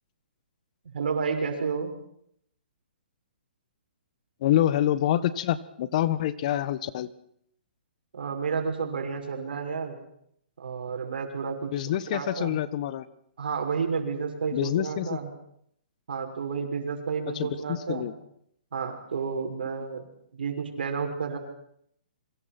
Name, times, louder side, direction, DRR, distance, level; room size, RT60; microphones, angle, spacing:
voice 1, 0.8-2.0 8.1-10.0 10.6-11.7 12.1-12.6 13.4-15.3 16.1-18.1 18.7-21.4, right 5 dB, 75° right, 4 dB, 6.1 m, -31 dB
voice 2, 4.4-7.1 11.7-13.0 14.5-15.2 17.3-18.1, left 12 dB, 45° left, 16 dB, 1.4 m, -26 dB
27.0 x 23.5 x 6.1 m, 0.70 s
hypercardioid pair, 140°, 5 cm